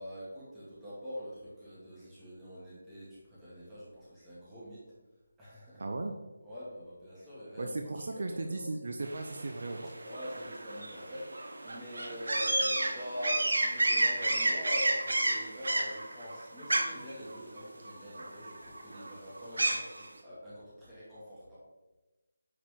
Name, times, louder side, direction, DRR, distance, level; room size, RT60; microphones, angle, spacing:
voice 1, 0.0-4.9 5.4-5.8 6.4-7.8 8.1-8.6 10.0-21.6, left 1 dB, 5° right, -11 dB, 2.3 m, -43 dB
voice 2, 5.8-6.1 7.6-9.9, right 2 dB, 55° right, 4 dB, 0.7 m, -36 dB
sound 1, 9.0-20.1, right 2 dB, 80° right, 1.5 m, -31 dB
9.7 x 4.7 x 3.8 m, 1.1 s
figure-of-eight pair, 175°, 0 cm